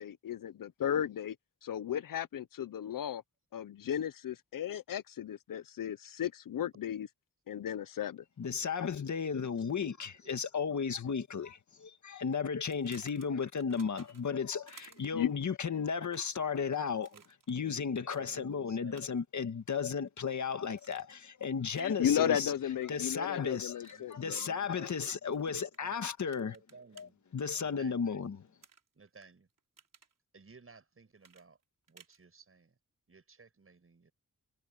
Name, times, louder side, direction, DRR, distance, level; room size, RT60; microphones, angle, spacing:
voice 1, 0.0-1.4 1.6-3.2 3.5-7.1 7.5-8.2 15.1-15.3 21.8-24.5, left 10 dB, 85° left, 0.7 m, -34 dB
voice 2, 8.4-17.1 17.5-22.5 22.9-23.7 24.1-26.6 27.0-27.1 27.3-28.4, left 6 dB, 60° left, 1.7 m, -34 dB
sound 1, 12.7-14.4 14.7-15.3 16.0-16.4 17.0-17.8 18.1-18.3 18.9-19.3 19.7-20.4 20.8-21.3 21.7-22.0 23.0-23.3 23.8-24.0 25.3-25.8 26.3-27.0 28.6-29.3 29.6-30.1 31.2-32.2, right 6 dB, 75° right, 4.3 m, -58 dB
voice 3, 17.6-19.1 22.9-26.0 26.3-27.2 27.5-28.1 28.9-29.5 30.3-31.6 31.9-32.8 33.1-34.1, right 4 dB, 45° right, 7.5 m, -57 dB
wide cardioid pair, 145°, 32 cm